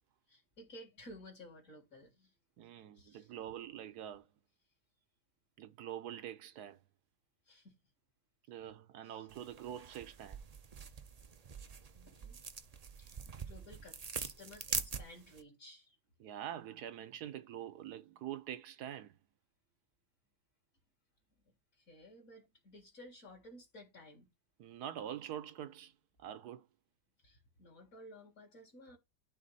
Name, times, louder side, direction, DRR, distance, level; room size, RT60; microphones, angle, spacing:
voice 1, 0.3-2.4 2.9-3.3 7.4-7.8 9.0-9.3 11.9-12.4 13.0-16.0 21.4-24.3 27.2-29.0, left 1 dB, 50° left, 2.7 m, -55 dB
voice 2, 2.6-4.3 5.6-6.8 8.5-10.4 16.2-19.2 24.6-25.9 26.2-26.7, right 10 dB, 70° right, 1.3 m, -45 dB
sound 1, 9.3-15.4, right 5 dB, 55° right, 0.4 m, -44 dB
11.5 x 3.9 x 4.1 m
omnidirectional pair, 1.8 m